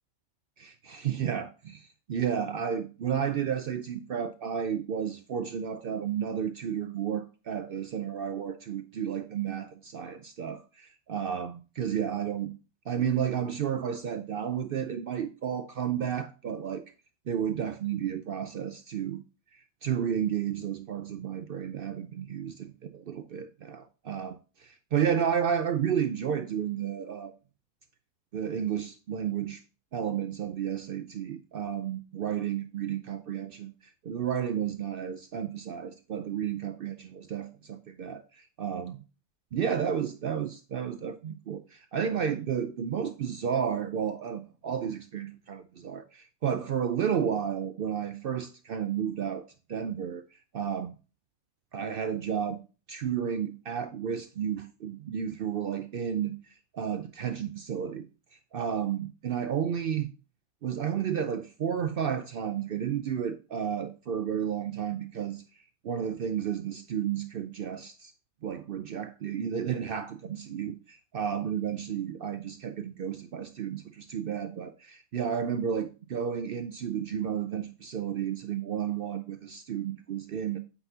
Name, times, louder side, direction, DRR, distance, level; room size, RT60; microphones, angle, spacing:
voice 1, 0.6-12.5 12.9-16.8 17.3-19.2 19.5-27.3 28.3-29.6 29.9-39.0 39.5-50.2 50.5-50.9 51.7-52.6 52.9-58.0 58.3-60.1 60.6-65.4 65.8-68.1 68.4-80.6, right 8 dB, 70° right, 0.5 m, -32 dB
8.0 x 5.6 x 2.7 m
omnidirectional pair, 1.5 m